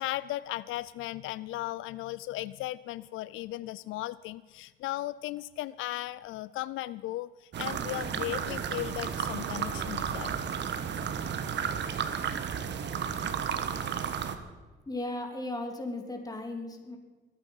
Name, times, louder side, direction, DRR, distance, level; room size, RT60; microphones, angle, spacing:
voice 1, 0.0-10.3, left 16 dB, 85° left, 18 dB, 0.4 m, -36 dB
sound 1, 7.5-14.4, right 7 dB, 65° right, 1.3 m, -33 dB
voice 2, 14.9-17.0, left 2 dB, 20° left, 3 dB, 3.0 m, -36 dB
23.0 x 9.1 x 5.6 m, 1.3 s
cardioid pair, 90°, 20 cm